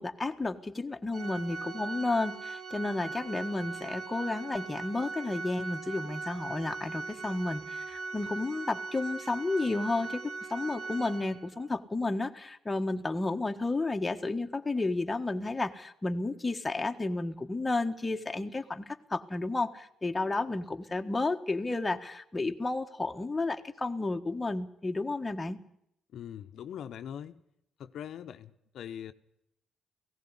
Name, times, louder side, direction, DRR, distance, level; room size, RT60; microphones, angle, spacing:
voice 1, 0.0-25.6, left 2 dB, 20° left, 1.5 m, -32 dB
Organ, 1.1-11.7, right 4 dB, 55° right, 1.8 m, -40 dB
voice 2, 26.1-27.4 27.8-29.1, left 9 dB, 70° left, 0.9 m, -42 dB
17.5 x 15.0 x 9.8 m
cardioid pair, 90°, 0 cm